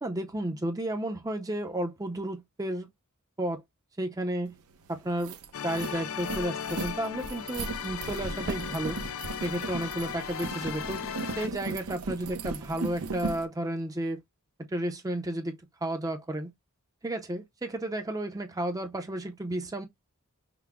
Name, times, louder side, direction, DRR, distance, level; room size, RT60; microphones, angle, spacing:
voice 1, 0.0-2.9 3.4-3.6 4.0-4.5 4.9-5.4 5.6-9.0 9.4-11.0 11.4-14.2 14.7-16.5 17.0-19.9, right 1 dB, 15° right, 0.5 m, -32 dB
sound 1, 4.6-4.7 5.0-13.4, right 3 dB, 75° right, 0.7 m, -37 dB
sound 2, 5.5-11.5, left 8 dB, 65° left, 0.5 m, -37 dB
5.8 x 2.1 x 3.5 m
head